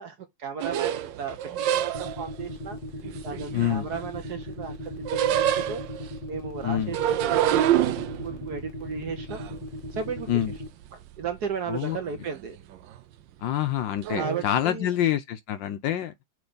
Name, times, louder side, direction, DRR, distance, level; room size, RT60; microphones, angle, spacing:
voice 1, 0.0-1.9 2.2-2.8 3.2-5.8 6.3-9.4 9.9-10.3 10.9-12.6 14.2-14.9, right 6 dB, 55° right, 1.2 m, -35 dB
sound 1, 0.6-2.3 3.0-4.3 4.6-6.1 6.8-10.5 10.9-11.6 11.8-12.4 12.7-13.0 14.0-14.5, right 11 dB, 75° right, 1.2 m, -27 dB
sound 2, 1.9-10.7, left 1 dB, 30° left, 1.0 m, -37 dB
voice 2, 3.5-3.9 6.6-7.0 10.3-10.5 11.7-12.0 13.4-16.1, left 11 dB, 70° left, 1.2 m, -26 dB
7.8 x 3.2 x 3.9 m
omnidirectional pair, 2.4 m